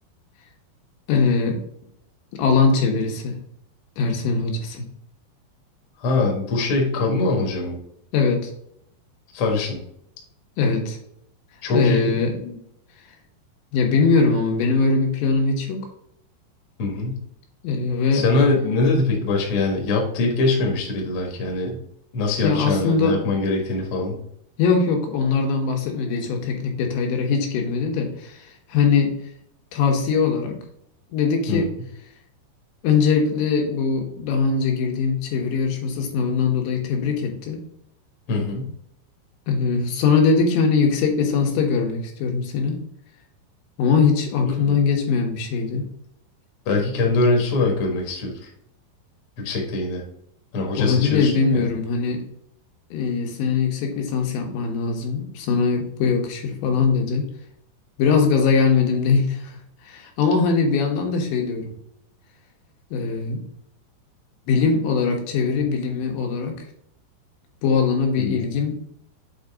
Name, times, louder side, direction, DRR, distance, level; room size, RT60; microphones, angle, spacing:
voice 1, 1.1-1.6 2.4-3.4 4.0-4.9 8.1-8.5 10.6-11.0 11.7-12.6 13.7-15.9 17.6-18.2 22.4-23.2 24.6-29.1 29.7-30.6 31.1-31.7 32.8-37.6 39.5-42.8 43.8-45.9 50.8-52.2 52.9-57.3 58.0-61.7 62.9-63.4 64.5-66.5 67.6-68.7, left 5 dB, 85° left, 1 dB, 3.6 m, -21 dB
voice 2, 6.0-7.8 9.3-9.8 11.6-12.1 16.8-17.2 18.1-21.8 22.1-24.2 31.5-31.6 38.3-38.7 44.4-44.8 46.6-48.3 49.4-50.0 50.5-51.7 68.2-68.4, left 3 dB, 55° left, 0 dB, 1.5 m, -22 dB
7.9 x 3.9 x 3.6 m, 0.71 s
omnidirectional pair, 5.0 m